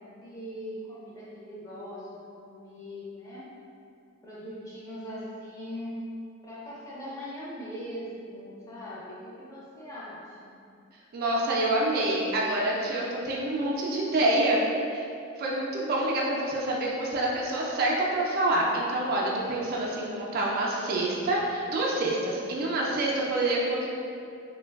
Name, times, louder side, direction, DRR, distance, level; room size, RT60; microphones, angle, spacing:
voice 1, 0.0-3.4 4.2-6.0 6.4-10.6, equal, 15° left, -9 dB, 0.6 m, -41 dB
voice 2, 11.1-14.6 14.9-15.1 15.4-23.9, right 1 dB, 45° right, -4 dB, 0.3 m, -27 dB
3.2 x 2.2 x 2.2 m, 2.5 s
head